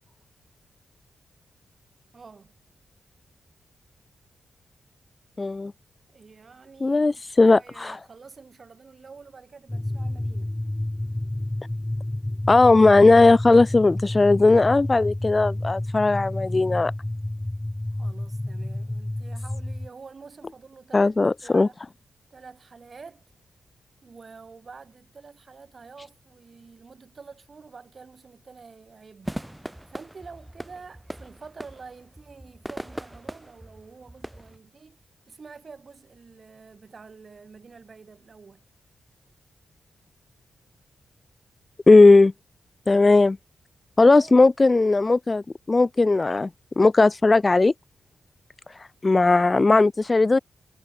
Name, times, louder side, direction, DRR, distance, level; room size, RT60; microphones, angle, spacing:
voice 1, 2.1-2.6 6.1-7.0 7.3-10.6 17.9-21.8 22.3-23.2 24.0-29.4 29.9-38.6 44.2-44.3, right 5 dB, 45° right, 7.1 m, -47 dB
voice 2, 5.4-5.7 6.8-8.0 12.5-16.9 20.9-21.7 41.9-42.3 42.9-43.4 44.0-46.5 46.8-47.7 49.0-50.4, left 3 dB, 30° left, 0.5 m, -17 dB
sound 1, 9.7-19.9, left 1 dB, 10° left, 1.6 m, -30 dB
sound 2, 29.2-34.6, right 1 dB, 10° right, 1.0 m, -39 dB
cardioid pair, 90°, 0 cm